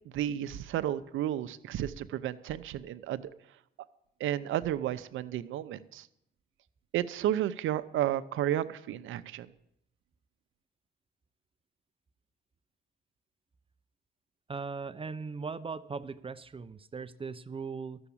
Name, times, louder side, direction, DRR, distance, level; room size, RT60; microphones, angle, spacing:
voice 1, 0.1-3.3 4.2-6.1 6.9-9.5, right 12 dB, 80° right, 12 dB, 0.7 m, -32 dB
voice 2, 14.5-18.0, right 5 dB, 25° right, 12 dB, 0.6 m, -39 dB
13.0 x 7.1 x 8.5 m, 0.77 s
cardioid pair, 90°, 20 cm